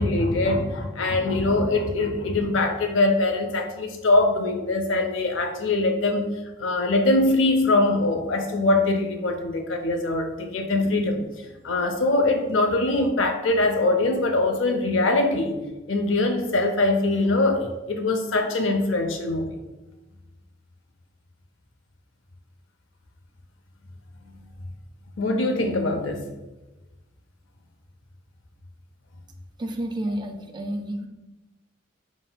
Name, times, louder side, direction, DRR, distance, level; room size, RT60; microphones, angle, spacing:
voice 1, 0.0-6.3 6.6-15.6 15.9-19.6 25.2-26.3, left 2 dB, 85° left, 5 dB, 0.5 m, -23 dB
voice 2, 29.6-31.1, right 1 dB, 25° right, 4 dB, 0.4 m, -30 dB
4.3 x 4.0 x 2.2 m, 1.1 s
head